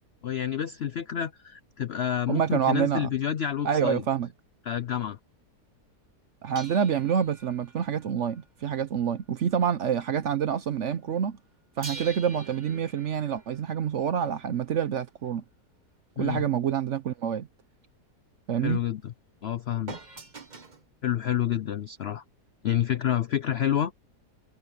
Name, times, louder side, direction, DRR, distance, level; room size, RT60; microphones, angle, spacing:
voice 1, 0.2-4.0 4.7-5.2 16.2-16.4 18.6-19.1 19.4-20.0 21.0-22.2 22.6-23.9, left 10 dB, 70° left, 0.6 m, -28 dB
voice 2, 2.3-3.1 3.6-4.3 6.4-11.4 11.8-15.4 16.2-17.5 18.5-18.8, right 8 dB, 60° right, 0.9 m, -27 dB
sound 1, 6.6-9.7 10.0-10.2 11.8-14.6 19.9-20.9 21.8-21.9, right 3 dB, 30° right, 1.4 m, -45 dB
omnidirectional pair, 1.8 m